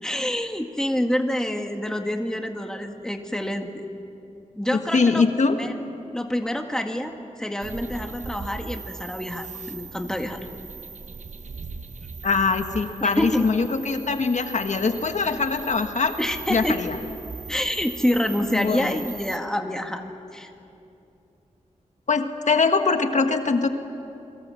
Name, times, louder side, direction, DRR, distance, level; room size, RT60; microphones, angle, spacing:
voice 1, 0.0-3.9 4.5-5.2 5.6-5.7 6.1-7.1 7.4-10.4 13.0-13.5 16.2-16.8 17.5-20.0 20.3-20.5, left 1 dB, 5° left, 4 dB, 1.9 m, -27 dB
voice 2, 4.7-5.6 12.2-16.1 16.5-17.0 18.5-19.0 22.1-23.7, left 4 dB, 70° left, 6 dB, 1.5 m, -22 dB
sound 1, 7.6-19.4, right 4 dB, 75° right, 1.1 m, -39 dB
30.0 x 23.0 x 7.7 m, 2.7 s
wide cardioid pair, 105°, 13 cm